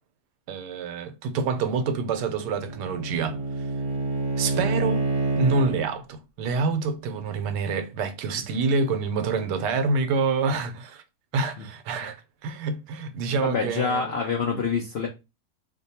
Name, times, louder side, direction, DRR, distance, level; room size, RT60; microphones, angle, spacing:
voice 1, 0.5-3.4 4.4-5.1 5.4-11.0 11.3-14.1, right 4 dB, 85° right, 1.2 m, -26 dB
Bowed string instrument, 1.8-5.9, right 3 dB, 40° right, 1.1 m, -28 dB
voice 2, 13.4-15.1, left 5 dB, 75° left, 0.5 m, -26 dB
2.9 x 2.2 x 4.1 m
omnidirectional pair, 1.8 m